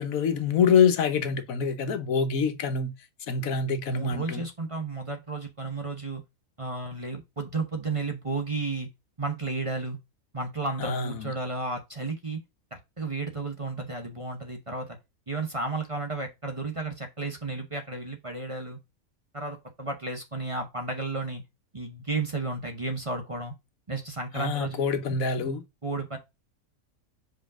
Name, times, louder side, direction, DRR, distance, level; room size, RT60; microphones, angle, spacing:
voice 1, 0.0-2.9 3.3-4.4 10.8-11.3 24.3-25.6, left 6 dB, 75° left, 1.3 m, -25 dB
voice 2, 3.9-6.2 6.6-8.9 9.2-10.0 10.3-12.4 12.7-15.0 15.3-18.8 19.3-21.4 21.7-23.5 23.9-24.8 25.8-26.2, right 3 dB, 25° right, 0.9 m, -33 dB
5.1 x 5.1 x 3.7 m
omnidirectional pair, 1.5 m